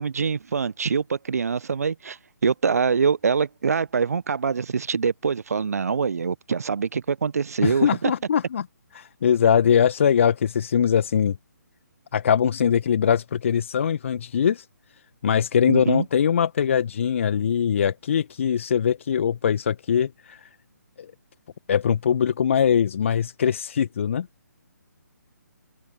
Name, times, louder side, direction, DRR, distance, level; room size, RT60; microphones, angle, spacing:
voice 1, 0.0-2.2 2.4-8.1 15.7-16.0, right 5 dB, 55° right, 1.0 m, -24 dB
voice 2, 7.6-8.7 8.9-11.4 12.1-14.7 15.2-20.5 21.0-21.1 21.7-24.3, left 8 dB, 45° left, 1.3 m, -22 dB
figure-of-eight pair, 140°, 10 cm